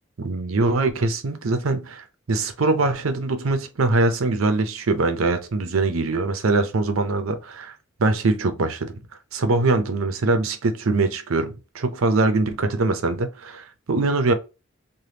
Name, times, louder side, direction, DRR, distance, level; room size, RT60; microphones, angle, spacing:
voice 1, 0.2-7.7 8.0-9.0 9.3-14.3, right 3 dB, 85° right, 0.6 m, -22 dB
3.4 x 2.2 x 2.8 m
head